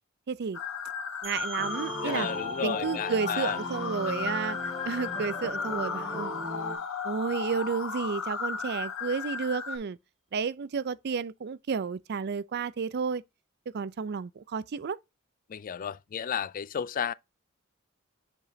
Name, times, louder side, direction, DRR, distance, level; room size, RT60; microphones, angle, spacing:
voice 1, 0.3-0.6 1.2-2.3 2.6-4.6 4.9-6.3 7.0-10.0 10.3-13.2 13.7-15.0, right 5 dB, 55° right, 0.4 m, -31 dB
sound 1, 0.5-9.8, left 5 dB, 90° left, 1.2 m, -35 dB
sound 2, 1.2-6.7, right 4 dB, 30° right, 1.3 m, -48 dB
sound 3, 1.6-6.8, left 1 dB, 20° left, 2.3 m, -38 dB
voice 2, 2.0-3.6 15.5-17.1, left 8 dB, 40° left, 0.4 m, -32 dB
7.5 x 5.0 x 2.7 m
head